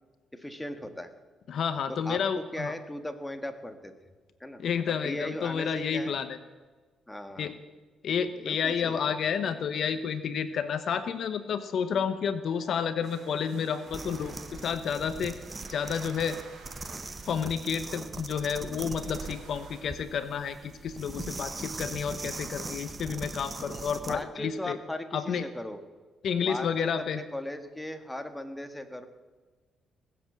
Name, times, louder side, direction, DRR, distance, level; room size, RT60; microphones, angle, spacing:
voice 1, 0.3-1.1 1.9-3.9 4.4-6.2 7.1-7.5 8.4-9.1 24.0-25.8 26.4-29.1, left 1 dB, 10° left, 7 dB, 1.6 m, -38 dB
voice 2, 1.5-2.7 4.6-6.4 7.4-7.5 8.0-15.3 15.7-16.4 17.2-24.8 25.1-25.4 26.2-27.2, left 7 dB, 65° left, 11 dB, 0.9 m, -30 dB
sound 1, 13.0-19.8, right 4 dB, 70° right, 4.3 m, -52 dB
sound 2, 13.9-24.2, right 3 dB, 25° right, 1.0 m, -40 dB
19.5 x 7.7 x 8.4 m, 1.3 s
cardioid pair, 90°, 0 cm